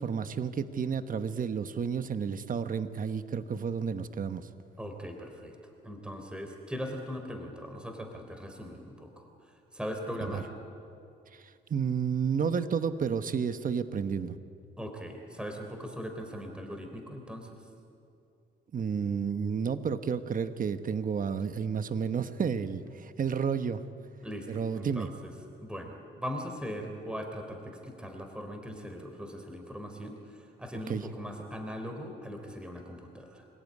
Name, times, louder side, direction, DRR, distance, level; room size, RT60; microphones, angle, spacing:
voice 1, 0.0-4.4 10.3-10.4 11.7-14.4 18.7-23.8 24.5-25.1 30.9-31.0, right 6 dB, 45° right, 10 dB, 1.2 m, -31 dB
voice 2, 4.8-5.6 5.8-10.5 14.8-17.5 24.2-25.3 25.6-33.5, equal, 5° right, 4 dB, 3.7 m, -40 dB
28.5 x 17.0 x 9.7 m, 2.6 s
cardioid pair, 90°, 20 cm